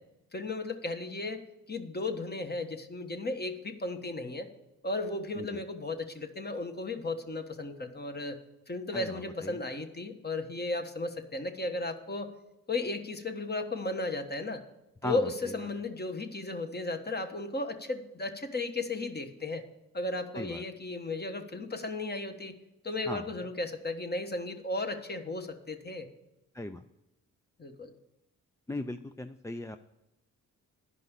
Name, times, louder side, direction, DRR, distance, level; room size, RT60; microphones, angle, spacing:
voice 1, 0.3-1.4 1.7-4.5 4.8-8.4 8.7-12.3 12.7-14.6 15.0-19.6 19.9-22.6 22.8-26.1 27.6-27.9, left 2 dB, 25° left, 6 dB, 1.4 m, -35 dB
voice 2, 8.9-9.6 15.0-15.3 20.3-20.6 23.1-23.3 26.5-26.8 28.7-29.8, left 1 dB, 10° left, 9 dB, 0.4 m, -38 dB
11.0 x 5.3 x 8.2 m, 0.92 s
supercardioid pair, 60°, 35 cm